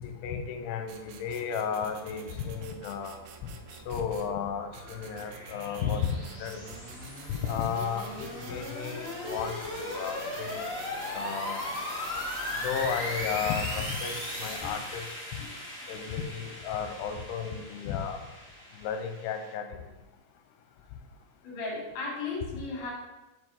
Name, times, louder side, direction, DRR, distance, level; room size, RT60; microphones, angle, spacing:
voice 1, 0.0-3.5 3.9-6.8 7.3-10.7 11.1-11.6 12.6-15.1 15.9-18.2 18.8-19.8, left 7 dB, 90° left, 7 dB, 2.7 m, -33 dB
sound 1, 0.9-4.3 4.7-11.2 11.6-14.6, right 5 dB, 80° right, 2.2 m, -49 dB
sound 2, 3.5-19.5, left 1 dB, 20° left, 2.7 m, -38 dB
voice 2, 21.4-22.9, left 3 dB, 70° left, -2 dB, 3.8 m, -35 dB
7.5 x 4.8 x 4.8 m, 1.0 s
omnidirectional pair, 4.8 m